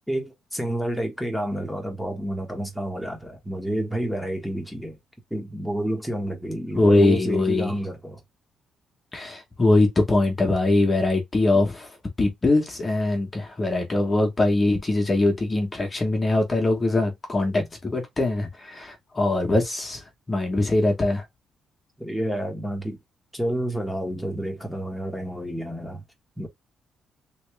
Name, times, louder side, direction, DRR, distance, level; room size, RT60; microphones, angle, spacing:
voice 1, 0.1-5.0 5.3-8.2 22.0-23.0 23.3-26.0 26.4-26.5, right 1 dB, ahead, 1.3 m, -29 dB
voice 2, 6.8-7.7 9.1-11.9 12.2-20.0 20.3-21.2, left 2 dB, 30° left, 1.2 m, -22 dB
3.1 x 2.9 x 3.3 m
cardioid pair, 90°, 0 cm